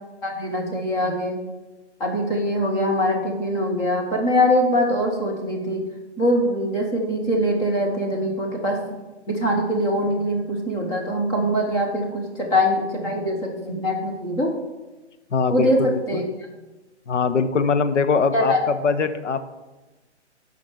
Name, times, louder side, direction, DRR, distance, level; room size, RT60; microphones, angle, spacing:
voice 1, 0.2-1.4 2.0-5.8 6.2-9.0 9.3-14.5 15.5-16.2 18.3-18.6, equal, 10° left, 0 dB, 0.9 m, -23 dB
voice 2, 15.3-16.3 17.1-18.5 18.8-19.4, left 5 dB, 85° left, 10 dB, 0.9 m, -22 dB
6.3 x 5.7 x 7.0 m, 1.1 s
hypercardioid pair, 160°, 35 cm